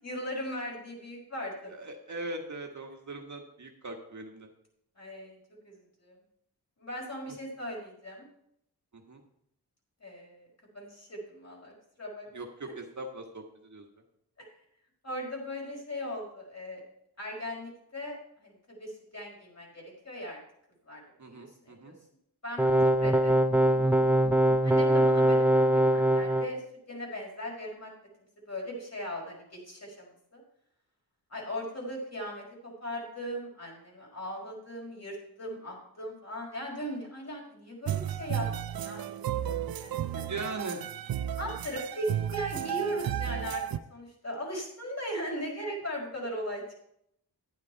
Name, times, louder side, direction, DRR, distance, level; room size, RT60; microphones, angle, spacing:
voice 1, 0.0-1.7 5.0-5.4 5.6-6.1 6.8-8.3 10.0-10.5 10.7-12.3 12.6-12.7 14.4-14.5 15.0-16.8 17.2-20.4 20.8-21.9 22.4-24.1 24.6-26.6 26.9-27.9 28.5-30.4 31.3-40.6 41.4-43.6 43.9-46.8, equal, 40° left, -2 dB, 5.2 m, -39 dB
voice 2, 1.7-4.5 8.9-9.2 12.3-13.9 21.2-21.9 40.1-40.8, right 2 dB, 45° right, 2 dB, 1.6 m, -40 dB
sound 1, 22.6-26.5, right 1 dB, 5° right, 0.5 m, -22 dB
sound 2, 37.9-43.8, right 10 dB, 60° right, 0.6 m, -33 dB
10.5 x 9.5 x 4.6 m, 0.74 s
cardioid pair, 70°, 40 cm